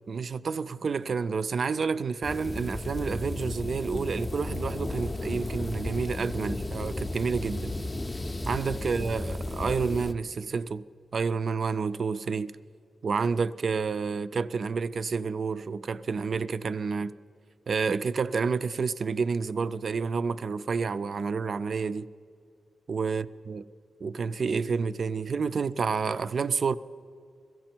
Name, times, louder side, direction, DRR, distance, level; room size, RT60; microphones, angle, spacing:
voice 1, 0.1-7.7 8.5-10.8 11.1-12.5 13.0-17.1 17.7-22.1 22.9-23.6 24.0-26.8, right 5 dB, 45° right, 0.3 m, -29 dB
sound 1, 2.2-10.1, left 2 dB, 20° left, 0.5 m, -34 dB
17.0 x 15.5 x 4.4 m
wide cardioid pair, 170°, 0 cm